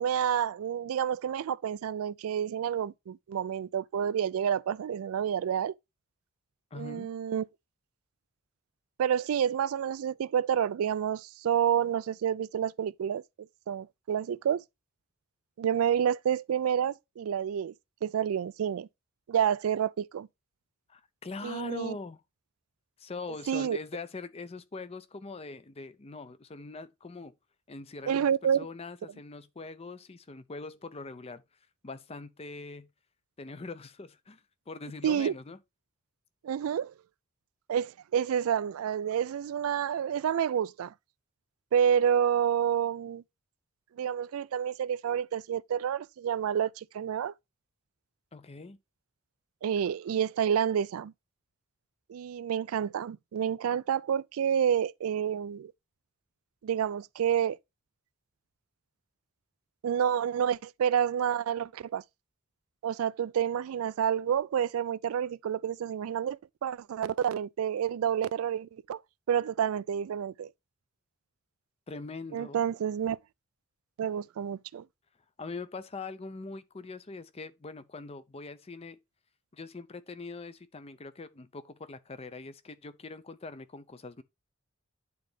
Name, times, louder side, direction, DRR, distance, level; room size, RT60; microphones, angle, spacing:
voice 1, 0.0-5.7 6.7-7.5 9.0-13.2 13.7-14.6 15.6-17.7 18.0-18.9 19.3-20.3 21.4-21.9 23.5-23.8 28.1-28.7 35.0-35.3 36.4-36.9 37.7-40.9 41.7-43.2 44.0-47.3 49.6-51.1 52.1-55.7 56.6-57.6 59.8-62.0 62.8-69.0 69.3-70.5 72.3-73.2 74.0-74.8, right 8 dB, 85° right, 0.3 m, -29 dB
voice 2, 6.7-7.1 20.9-22.2 23.0-27.3 27.7-31.4 31.8-32.9 33.4-34.4 34.7-35.6 48.3-48.8 71.9-72.6 75.4-79.0 79.5-84.2, left 3 dB, 30° left, 0.5 m, -42 dB
9.4 x 3.9 x 3.4 m
head